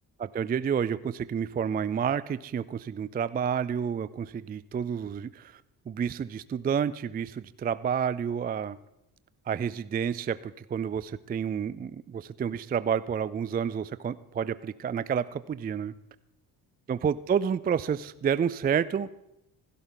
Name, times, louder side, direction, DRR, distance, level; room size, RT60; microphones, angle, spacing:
voice 1, 0.2-5.6 5.9-8.8 9.5-15.9 16.9-19.1, right 7 dB, 25° right, 17 dB, 0.3 m, -29 dB
15.5 x 12.5 x 3.8 m, 0.86 s
supercardioid pair, 60°, 42 cm